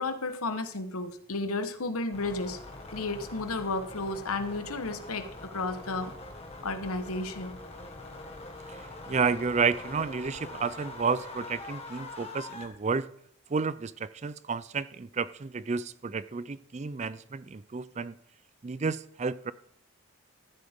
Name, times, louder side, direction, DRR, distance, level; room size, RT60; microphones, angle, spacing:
voice 1, 0.0-2.6 2.9-6.1 6.6-7.6, left 3 dB, 85° left, 9 dB, 1.2 m, -33 dB
sound 1, 2.1-12.6, left 2 dB, 30° left, 1.6 m, -44 dB
voice 2, 8.8-13.1 13.5-18.2 18.6-19.5, right 5 dB, 30° right, 16 dB, 0.4 m, -31 dB
14.0 x 12.0 x 3.6 m, 0.66 s
head